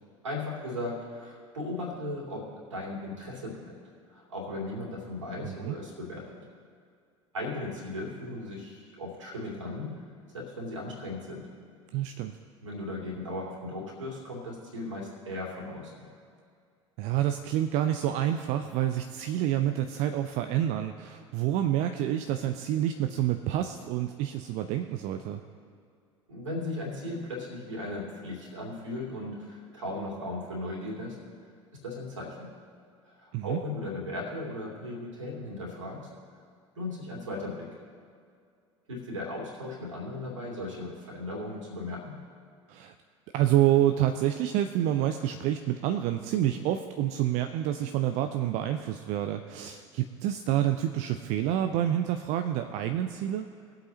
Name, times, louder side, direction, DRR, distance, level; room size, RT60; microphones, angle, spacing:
voice 1, 0.2-3.8 4.1-6.4 7.3-10.0 10.3-11.5 12.6-16.1 26.3-31.2 31.8-32.5 33.0-36.1 36.7-37.8 38.9-42.2, left 2 dB, 75° right, -3 dB, 2.9 m, -37 dB
voice 2, 5.4-5.7 11.9-12.4 17.0-25.4 33.3-33.6 42.7-42.9 43.3-53.5, right 12 dB, 45° right, 7 dB, 0.5 m, -28 dB
21.0 x 8.0 x 2.9 m, 2.3 s
figure-of-eight pair, 70°, 16 cm